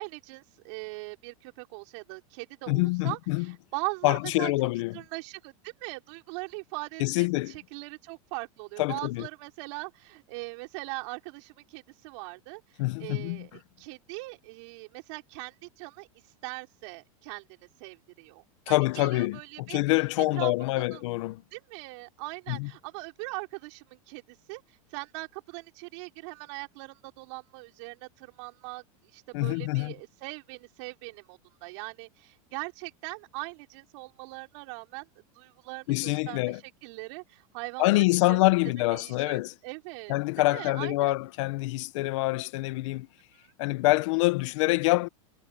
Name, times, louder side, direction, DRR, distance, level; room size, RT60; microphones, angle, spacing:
voice 1, 0.0-4.5 4.9-12.6 13.0-16.1 16.4-17.4 17.8-19.8 20.2-20.5 20.9-21.0 21.5-28.8 29.1-36.4 36.8-38.4 38.9-40.1 40.5-41.1 43.3-43.5, right 28 dB, 55° right, 5.1 m, -40 dB
voice 2, 2.7-3.5 4.0-5.0 7.0-7.5 8.8-9.3 12.8-13.5 18.7-21.4 22.5-22.7 29.3-29.9 35.9-36.6 37.8-39.5 40.1-43.1 43.6-45.1, left 20 dB, 60° left, 1.0 m, -26 dB
supercardioid pair, 150°, 18 cm